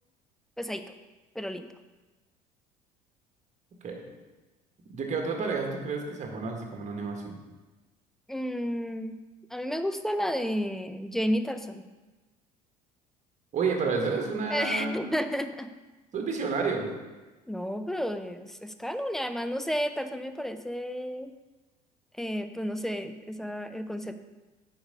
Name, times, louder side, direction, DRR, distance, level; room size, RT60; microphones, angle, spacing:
voice 1, 1.4-1.7 8.3-9.2 9.5-11.9 14.5-15.7 17.5-21.3 22.2-24.2, equal, ahead, 9 dB, 0.5 m, -32 dB
voice 2, 4.9-7.3 13.5-15.1 16.1-16.9, right 4 dB, 35° right, 2 dB, 1.7 m, -30 dB
8.7 x 4.8 x 5.3 m, 1.2 s
figure-of-eight pair, 60°, 21 cm